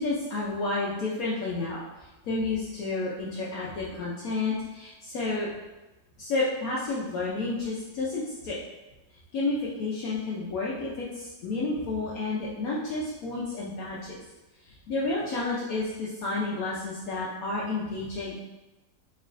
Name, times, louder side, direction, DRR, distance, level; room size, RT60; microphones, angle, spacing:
voice 1, 0.0-1.8 2.3-5.5 6.2-8.6 9.3-14.2 14.9-18.4, left 3 dB, 70° left, -5 dB, 0.8 m, -30 dB
4.5 x 3.1 x 2.5 m, 1.1 s
omnidirectional pair, 2.0 m